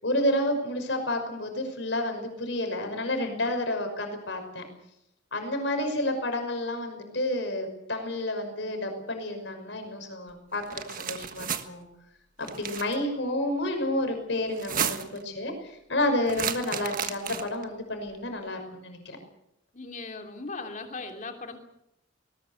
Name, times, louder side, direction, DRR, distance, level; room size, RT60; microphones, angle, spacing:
voice 1, 0.0-4.6 5.3-11.9 12.4-19.2, left 1 dB, 70° left, 5 dB, 5.7 m, -30 dB
sound 1, 10.6-11.6 12.4-13.0 14.5-15.2 16.3-17.6, right 8 dB, 45° right, 1.5 m, -32 dB
voice 2, 19.7-21.6, left 3 dB, 40° left, 5 dB, 3.2 m, -38 dB
20.5 x 19.5 x 8.1 m, 0.84 s
head